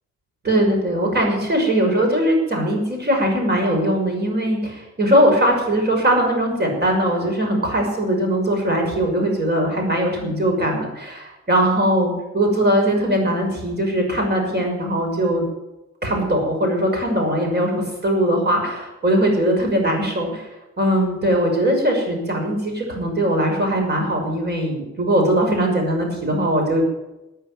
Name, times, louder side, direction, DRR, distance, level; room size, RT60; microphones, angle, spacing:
voice 1, 0.4-15.4 16.0-20.5 20.8-26.8, right 1 dB, 35° right, 2 dB, 6.2 m, -20 dB
14.0 x 9.2 x 9.5 m, 0.98 s
cardioid pair, 90°, 30 cm